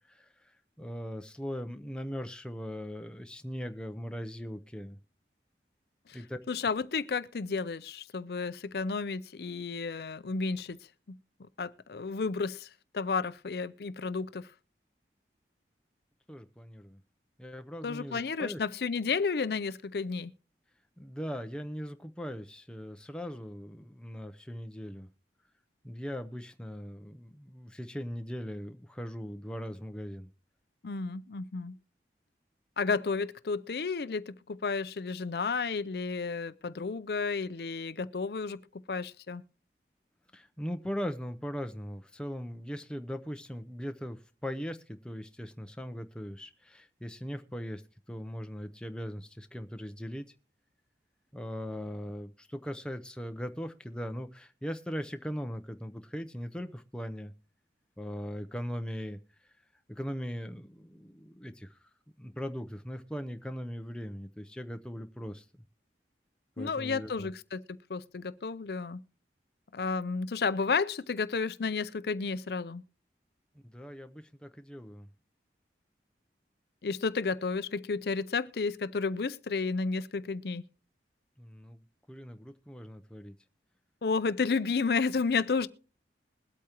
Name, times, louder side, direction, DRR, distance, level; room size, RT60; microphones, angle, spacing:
voice 1, 0.1-5.0 6.1-6.4 16.3-17.0 17.4-18.6 21.0-25.1 25.8-30.3 40.3-47.8 48.1-50.3 51.3-57.3 58.0-59.2 59.9-61.8 62.2-65.4 66.6-67.3 73.6-75.1 81.4-83.3, equal, 5° left, 0.6 m, -39 dB
voice 2, 6.5-10.8 11.6-14.5 17.8-20.3 30.8-31.7 32.8-38.6 38.9-39.4 66.6-67.6 67.9-69.0 69.7-72.8 76.8-80.6 84.0-85.7, left 4 dB, 65° left, 0.5 m, -32 dB
21.5 x 8.4 x 2.9 m
head